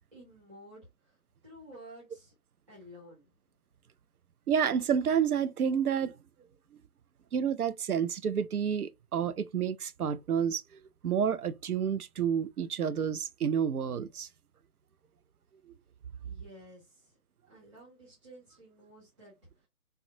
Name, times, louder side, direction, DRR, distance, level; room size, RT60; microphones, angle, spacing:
voice 1, 0.1-1.2 1.4-2.3 2.7-3.3 16.2-17.2 17.5-19.3, equal, 20° right, 1.0 m, -52 dB
voice 2, 4.5-6.1 7.3-10.6 11.0-14.3, right 7 dB, 80° right, 0.5 m, -29 dB
3.5 x 2.1 x 2.6 m
figure-of-eight pair, 150°, 44 cm